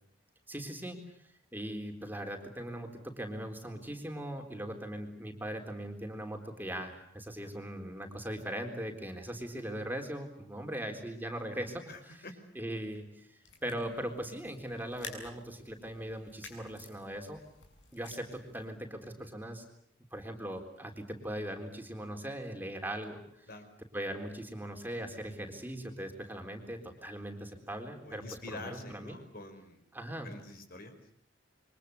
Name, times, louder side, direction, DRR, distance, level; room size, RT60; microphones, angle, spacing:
voice 1, 0.5-1.0 1.5-12.3 12.6-13.3 13.6-17.4 17.9-19.6 20.1-23.5 23.9-29.2 29.9-30.3, right 1 dB, 10° right, 4 dB, 3.9 m, -40 dB
voice 2, 11.9-12.3 23.5-23.6 28.0-29.8 30.2-31.0, left 2 dB, 55° left, 8 dB, 5.1 m, -46 dB
sound 1, 13.4-18.7, left 3 dB, 85° left, 7.5 m, -51 dB
28.5 x 24.0 x 8.4 m, 0.68 s
head